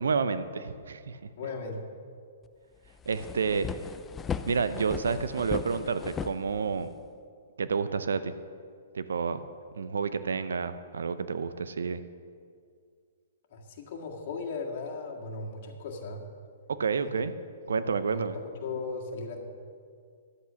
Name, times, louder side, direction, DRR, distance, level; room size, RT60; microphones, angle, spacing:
voice 1, 0.0-1.2 3.1-3.7 4.5-6.9 7.6-8.3 8.9-9.5 9.7-12.0 16.7-17.3 17.7-18.4, right 5 dB, 80° right, 12 dB, 0.6 m, -29 dB
voice 2, 1.4-1.8 13.5-16.2 18.1-19.4, left 3 dB, 55° left, -1 dB, 1.9 m, -37 dB
sound 1, 2.5-2.6 2.9-7.1, left 7 dB, 15° left, 0.4 m, -37 dB
11.5 x 8.3 x 6.3 m, 2.2 s
hypercardioid pair, 130°, 0 cm